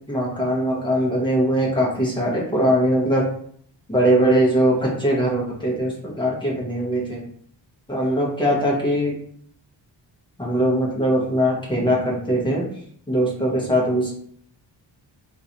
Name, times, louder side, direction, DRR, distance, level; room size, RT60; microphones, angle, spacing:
voice 1, 0.1-3.2 3.9-7.2 7.9-9.1 10.4-12.7 13.1-14.1, equal, 10° left, -4 dB, 1.0 m, -21 dB
3.7 x 2.7 x 2.9 m, 0.62 s
wide cardioid pair, 155°, 45 cm